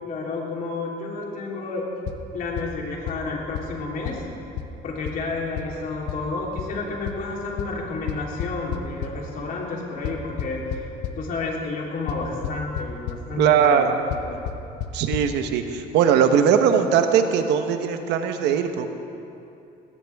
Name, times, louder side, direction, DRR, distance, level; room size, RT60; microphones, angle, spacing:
voice 1, 0.0-1.9 2.3-4.2 4.8-10.8 11.2-13.9 14.2-14.4, left 3 dB, 55° left, -2 dB, 3.6 m, -31 dB
sound 1, 2.1-2.2 2.6-2.7 3.1-3.2 3.5-3.6 4.1-4.2 4.6-4.7 5.1-5.2 5.6-5.7 6.1-6.2 6.6-6.7 7.1-7.2 7.6-7.7 8.1-9.1 10.0-11.1 12.1-12.2 12.4-12.8 13.1-13.2 14.1-14.2 14.5-14.6 14.8-14.9 15.1-15.2, left 12 dB, 80° left, 1.0 m, -28 dB
voice 2, 13.4-13.9 14.9-18.9, right 7 dB, 85° right, 7 dB, 1.1 m, -20 dB
20.5 x 17.0 x 3.6 m, 2.8 s
cardioid pair, 110°, 17 cm